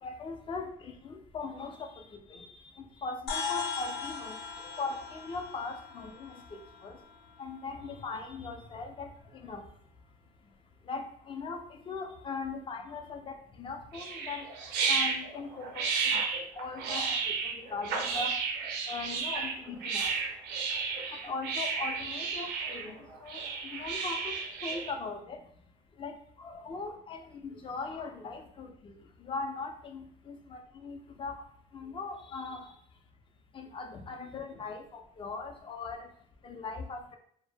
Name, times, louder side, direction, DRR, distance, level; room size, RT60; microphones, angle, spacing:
voice 1, 0.0-7.0 7.4-9.6 10.9-14.4 14.9-16.2 16.6-18.4 18.9-20.1 21.1-23.4 23.7-24.4 24.6-25.4 26.0-28.9 29.2-31.3 31.7-32.7 33.5-36.1 36.4-37.2, left 4 dB, 30° left, 4 dB, 0.4 m, -40 dB
sound 1, 3.3-7.9, left 5 dB, 80° left, 0.7 m, -39 dB
sound 2, 13.9-24.9, right 5 dB, 85° right, 0.5 m, -32 dB
2.1 x 2.0 x 3.2 m, 0.66 s
cardioid pair, 110°, 17 cm